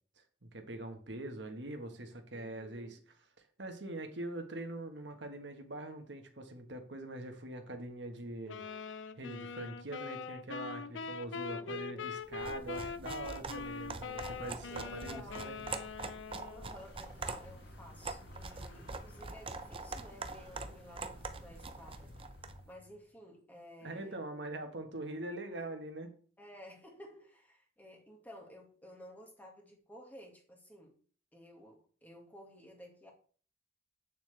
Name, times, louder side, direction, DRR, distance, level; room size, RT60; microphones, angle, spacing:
voice 1, 0.2-3.0 3.6-8.6 9.2-15.6 23.8-26.1, right 2 dB, 75° right, 1.4 m, -43 dB
voice 2, 2.3-3.0 8.4-8.9 11.5-12.1 14.6-15.5 16.5-22.1 22.7-24.2 26.4-31.0 31.3-33.1, equal, 10° left, 1.8 m, -54 dB
sound 1, 8.5-16.8, left 5 dB, 90° left, 0.5 m, -43 dB
sound 2, 12.3-22.6, right 3 dB, 30° right, 0.6 m, -44 dB
Vehicle, 16.8-23.1, left 2 dB, 65° left, 0.9 m, -55 dB
8.6 x 7.1 x 3.3 m
head